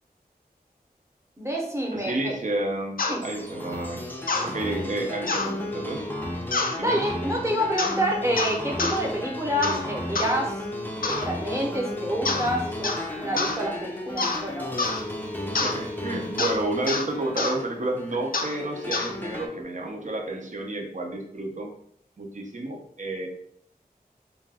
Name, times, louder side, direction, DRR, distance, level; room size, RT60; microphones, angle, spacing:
voice 1, 1.4-2.3 3.1-3.2 6.8-10.6 11.1-14.7, equal, 15° right, -1 dB, 0.9 m, -28 dB
voice 2, 1.9-4.1 4.4-6.0 6.8-7.0 15.6-21.7 22.2-23.3, right 2 dB, 50° right, 2 dB, 0.6 m, -30 dB
sound 1, 3.0-3.2 4.3-4.5 5.3-5.5 6.5-6.8 7.8-8.0 8.4-9.0 9.6-9.8 10.2-10.3 11.0-11.3 12.3-12.5 12.8-13.1 13.4-13.6 14.2-14.4 14.8-15.0 15.6-15.8 16.4-16.6 16.9-17.1 17.4-17.6 18.3-18.5 18.9-19.1, left 3 dB, 60° left, 0.5 m, -27 dB
sound 2, 3.2-19.5, left 1 dB, 10° left, 0.5 m, -34 dB
2.5 x 2.3 x 3.4 m, 0.67 s
wide cardioid pair, 50°, 16 cm